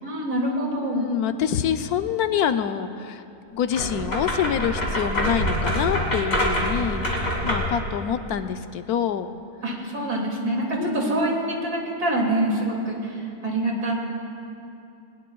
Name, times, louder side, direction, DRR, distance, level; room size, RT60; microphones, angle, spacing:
voice 1, 0.0-1.1 9.6-13.9, right 1 dB, 80° right, -2 dB, 3.0 m, -25 dB
voice 2, 0.8-3.2 3.5-7.1 7.4-9.3 10.8-11.3, left 9 dB, 80° left, 9 dB, 1.1 m, -26 dB
sound 1, 3.7-7.8, equal, 40° left, 2.7 m, -25 dB
20.5 x 19.5 x 2.3 m, 2.7 s
omnidirectional pair, 1.6 m